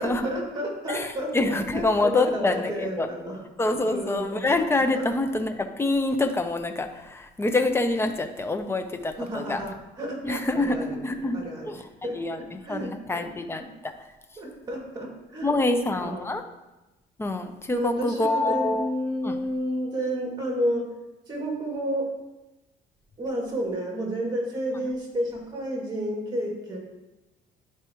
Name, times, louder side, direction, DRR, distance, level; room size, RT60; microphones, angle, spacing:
voice 1, 0.0-3.4 3.8-4.5 4.9-5.1 9.2-9.7 10.0-11.0 11.3-11.7 12.0-13.3 14.4-16.3 17.7-20.9 21.3-22.1 23.2-26.8, equal, 25° right, -1 dB, 2.4 m, -31 dB
voice 2, 0.9-3.1 3.6-9.6 10.2-11.4 11.7-11.9 12.1-13.9 15.4-16.4 17.2-18.9 19.2-19.3, left 2 dB, 15° left, 7 dB, 0.7 m, -26 dB
11.0 x 4.6 x 3.1 m, 1.0 s
cardioid pair, 110°, 17 cm